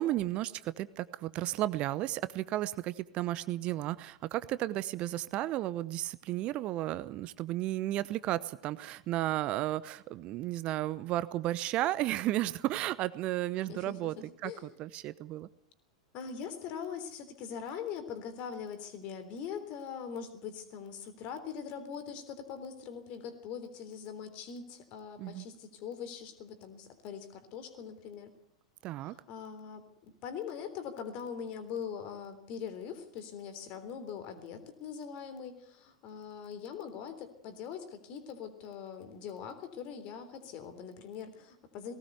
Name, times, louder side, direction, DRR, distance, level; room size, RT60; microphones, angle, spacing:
voice 1, 0.0-14.2 14.4-14.5 14.8-15.5 25.2-25.5 28.8-29.1, right 15 dB, 35° right, 17 dB, 0.8 m, -33 dB
voice 2, 16.1-28.3 29.0-29.8 30.2-41.9, left 7 dB, 40° left, 10 dB, 3.6 m, -42 dB
19.0 x 18.0 x 8.2 m, 0.73 s
figure-of-eight pair, 90°, 3 cm